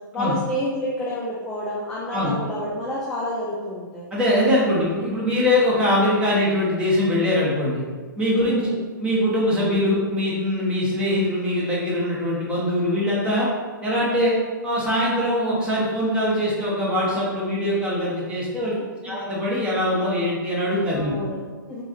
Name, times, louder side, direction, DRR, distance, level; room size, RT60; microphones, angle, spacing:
voice 1, 0.1-4.1 5.3-5.5 8.4-8.9 19.1-19.3 20.9-21.8, left 1 dB, 5° left, -6 dB, 0.4 m, -29 dB
voice 2, 4.1-7.8 8.2-8.6 9.0-13.5 13.8-14.3 14.6-18.8 19.0-21.1, left 1 dB, 10° right, -7 dB, 1.1 m, -22 dB
4.7 x 2.4 x 2.5 m, 1.4 s
hypercardioid pair, 130°, 11 cm